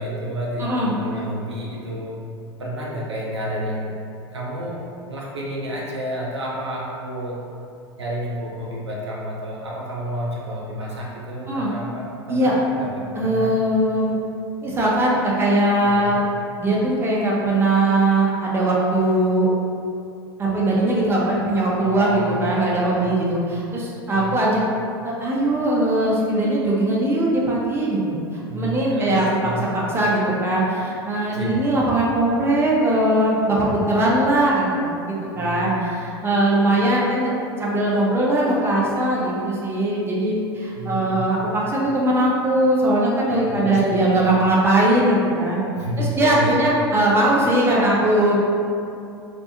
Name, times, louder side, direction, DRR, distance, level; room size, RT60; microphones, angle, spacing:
voice 1, 0.0-2.2 2.6-3.9 4.3-7.4 8.0-13.5 15.8-16.2 21.8-23.1 24.1-24.4 28.5-29.6 31.3-31.6 35.3-35.7 40.7-41.3 43.3-44.4 45.8-46.6, equal, 85° right, -3 dB, 0.4 m, -30 dB
voice 2, 0.6-0.9 11.5-11.7 12.3-12.6 13.2-14.1 14.6-16.2 16.6-19.5 20.4-24.6 25.0-28.2 28.5-45.6 46.0-48.4, right 1 dB, 15° right, -5 dB, 0.6 m, -20 dB
2.6 x 2.3 x 2.6 m, 2.5 s
figure-of-eight pair, 85°, 14 cm